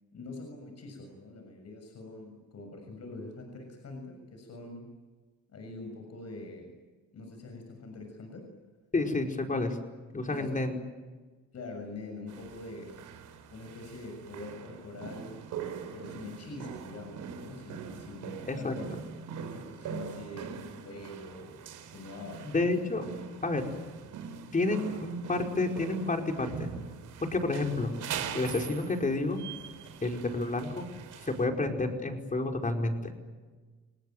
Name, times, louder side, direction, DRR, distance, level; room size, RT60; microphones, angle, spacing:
voice 1, 0.1-4.9 5.5-6.7 7.1-8.5 10.2-10.8 11.5-13.0 13.5-15.4 15.9-18.8 19.3-21.6 21.9-22.5, left 2 dB, 55° left, 4 dB, 6.8 m, -44 dB
voice 2, 8.9-9.8 10.1-10.8 18.5-18.7 22.4-23.1 23.4-23.7 24.5-26.7 27.2-27.9 28.3-29.4 30.0-30.9 31.2-33.1, left 2 dB, 25° left, 3 dB, 5.1 m, -30 dB
sound 1, 12.3-31.5, right 7 dB, 80° right, 3.7 m, -42 dB
29.5 x 19.5 x 9.4 m, 1.3 s
cardioid pair, 90°, 30 cm